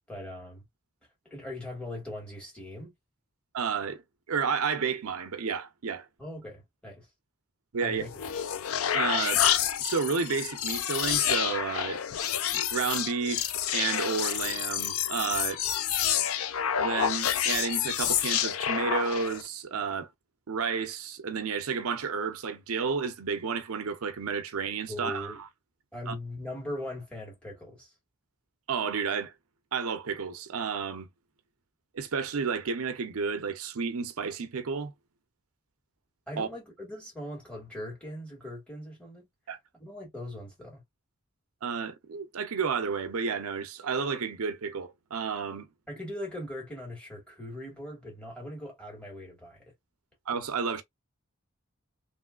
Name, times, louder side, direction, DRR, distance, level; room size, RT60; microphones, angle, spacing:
voice 1, 0.1-0.6 1.3-2.9 6.2-7.1 7.8-8.1 24.9-25.4 25.9-27.9 36.3-39.3 39.7-40.8 45.9-49.6, left 1 dB, 5° left, 1.7 m, -40 dB
voice 2, 3.5-4.0 4.3-6.1 7.7-8.0 8.9-9.4 9.8-12.0 12.5-15.6 16.8-20.1 20.5-25.3 26.1-26.2 28.7-29.3 29.7-31.1 31.9-34.9 36.4-36.5 39.5-39.6 41.6-45.7 50.3-50.8, right 5 dB, 85° right, 0.6 m, -31 dB
sound 1, 8.0-19.5, left 10 dB, 80° left, 0.5 m, -28 dB
3.1 x 3.0 x 2.3 m
head